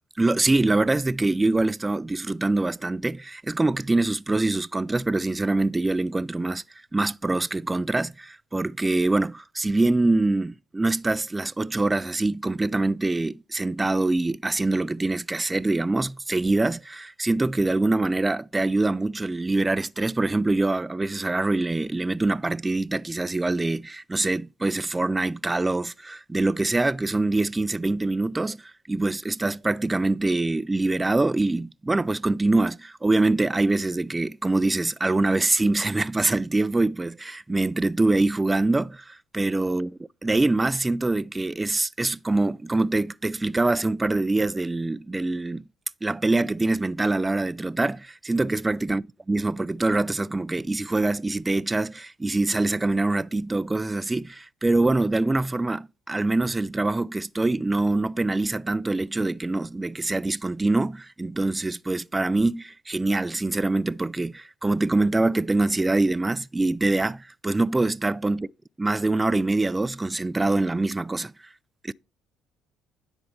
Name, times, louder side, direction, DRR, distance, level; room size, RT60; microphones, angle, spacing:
voice 1, 0.2-6.6 6.9-39.9 40.2-45.6 46.0-49.0 49.3-68.5 68.8-71.3 71.8-71.9, right 2 dB, 15° right, 0.4 m, -24 dB
10.0 x 4.4 x 5.5 m
hypercardioid pair, 65°, 0 cm